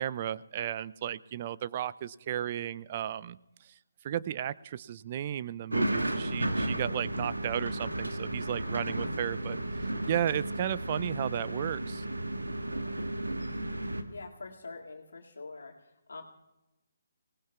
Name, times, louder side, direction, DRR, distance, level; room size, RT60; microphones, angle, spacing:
voice 1, 0.0-3.7 4.0-9.6 10.1-12.0, right 10 dB, 35° right, 17 dB, 0.4 m, -34 dB
sound 1, 5.7-14.0, right 1 dB, 90° right, 1.4 m, -33 dB
voice 2, 14.1-15.7 16.1-16.2, left 3 dB, 70° left, 0 dB, 2.2 m, -44 dB
25.5 x 18.5 x 2.4 m, 0.99 s
figure-of-eight pair, 140°, 0 cm